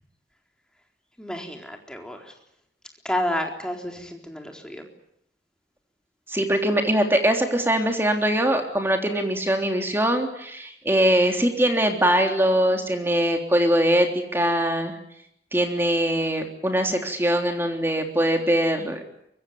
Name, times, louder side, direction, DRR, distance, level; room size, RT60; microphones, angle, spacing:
voice 1, 1.2-2.3 3.0-4.9, left 1 dB, 5° left, 2 dB, 4.0 m, -30 dB
voice 2, 6.3-14.1 14.3-15.0 15.5-19.0, right 1 dB, 15° right, 3 dB, 3.4 m, -22 dB
24.0 x 23.5 x 9.3 m, 0.76 s
head